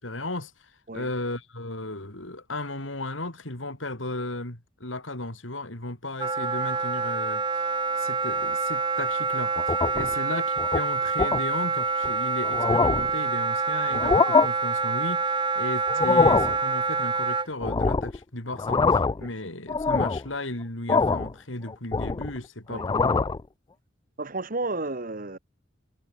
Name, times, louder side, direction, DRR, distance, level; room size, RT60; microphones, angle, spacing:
voice 1, 0.0-7.7 8.0-23.2, left 2 dB, 85° left, 5.1 m, -35 dB
Wind instrument woodwind instrument, 6.2-17.5, right 4 dB, 25° right, 3.0 m, -27 dB
sound 1, 9.6-10.1 10.6-10.8 11.2-11.4 12.0-12.1 12.5-13.1 13.9-14.5 15.9-16.6 17.6-18.2 18.5-19.3 19.7-20.3 20.9-21.3 21.7-22.4 22.7-23.4, left 4 dB, 25° left, 0.4 m, -23 dB
voice 2, 24.2-25.4, right 2 dB, 45° right, 2.6 m, -32 dB
head